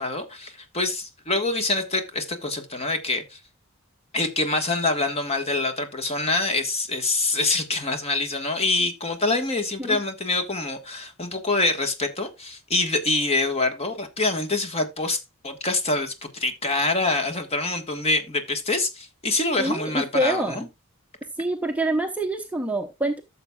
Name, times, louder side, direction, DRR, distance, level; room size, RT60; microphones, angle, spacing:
voice 1, 0.0-3.4 4.1-20.6, left 2 dB, 30° left, 1.4 m, -25 dB
voice 2, 19.6-20.7 21.4-23.2, right 1 dB, 5° right, 0.7 m, -26 dB
14.0 x 6.9 x 2.3 m
head